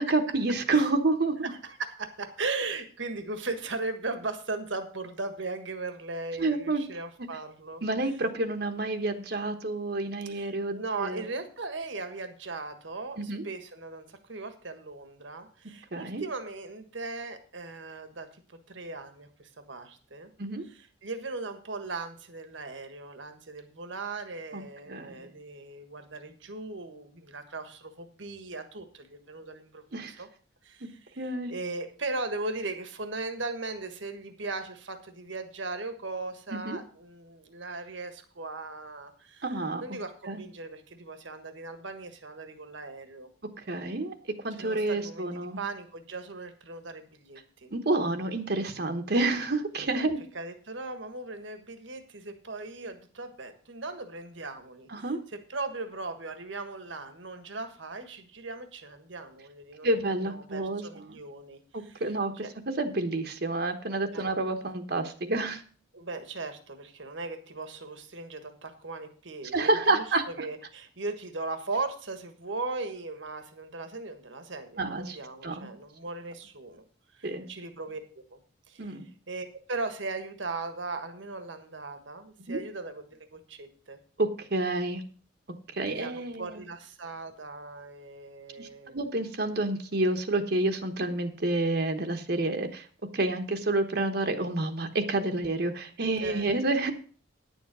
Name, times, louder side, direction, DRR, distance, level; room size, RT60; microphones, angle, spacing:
voice 1, 0.0-1.5 6.4-6.8 7.8-11.2 13.2-13.4 15.9-16.2 20.4-20.6 24.5-25.3 29.9-30.2 30.8-30.9 31.2-31.5 36.5-36.8 39.4-39.8 40.3-40.4 43.6-44.1 44.4-45.6 47.7-50.2 54.9-55.2 59.8-61.2 61.7-62.4 62.8-65.6 69.5-70.2 74.8-75.2 75.4-75.7 77.2-77.5 78.8-79.1 82.5-82.6 84.2-85.0 85.7-86.6 88.6-92.9 93.1-96.9, right 2 dB, 55° right, 6 dB, 1.1 m, -29 dB
voice 2, 1.4-7.8 10.3-20.3 20.7-30.3 30.6-43.3 44.6-47.7 49.9-50.1 50.3-62.0 62.3-62.5 64.1-64.3 65.9-76.8 77.1-78.0 78.3-78.4 78.7-79.0 79.3-84.0 85.8-89.0 96.2-96.4, right 3 dB, 75° right, 8 dB, 1.5 m, -38 dB
10.0 x 7.3 x 6.1 m, 0.41 s
head